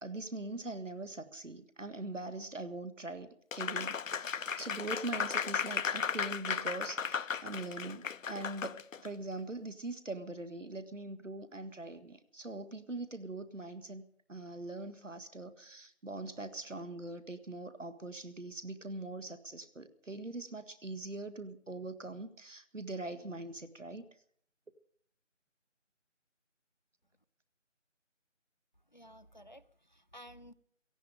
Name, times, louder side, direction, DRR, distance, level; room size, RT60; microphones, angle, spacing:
voice 1, 0.0-3.3 3.6-24.1, right 2 dB, 75° right, 10 dB, 1.8 m, -42 dB
Applause, 3.5-9.1, left 6 dB, 85° left, 0.6 m, -35 dB
voice 2, 28.9-30.5, equal, 35° left, 13 dB, 0.6 m, -54 dB
17.5 x 14.5 x 5.1 m, 0.64 s
figure-of-eight pair, 170°, 38 cm